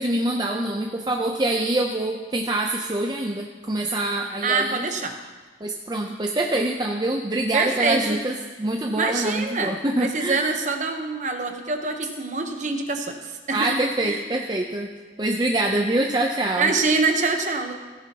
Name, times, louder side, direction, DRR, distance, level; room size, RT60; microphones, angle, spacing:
voice 1, 0.0-4.9 5.6-8.3 8.6-10.5 13.5-14.9 15.2-16.7, right 1 dB, 25° right, 1 dB, 0.5 m, -25 dB
voice 2, 4.4-5.2 7.5-8.2 9.0-14.2 16.6-17.7, right 3 dB, 40° right, 5 dB, 0.9 m, -25 dB
16.5 x 9.9 x 2.9 m, 1.4 s
head